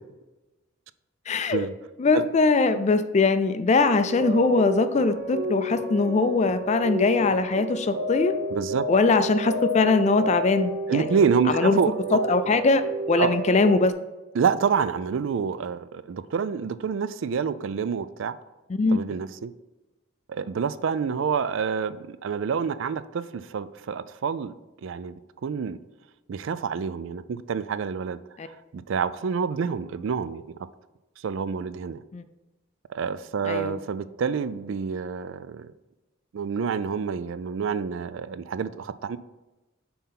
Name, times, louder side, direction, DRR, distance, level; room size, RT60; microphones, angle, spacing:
voice 1, 1.3-1.6 2.0-8.3 8.9-11.2 11.5-11.8 12.1-12.8 13.1-13.9 18.7-19.0 28.4-28.5 32.1-32.2 33.4-33.8, left 3 dB, 30° left, 11 dB, 0.3 m, -21 dB
sound 1, 3.9-13.9, equal, 90° right, 0.9 m, -31 dB
voice 2, 8.5-8.8 10.9-11.9 13.2-13.4 14.3-18.4 18.9-19.5 20.3-24.5 24.8-25.8 26.3-28.2 28.4-30.4 31.2-32.0 32.9-35.7 36.3-39.2, right 6 dB, 60° right, 15 dB, 0.3 m, -27 dB
5.5 x 4.3 x 5.8 m, 1.1 s
head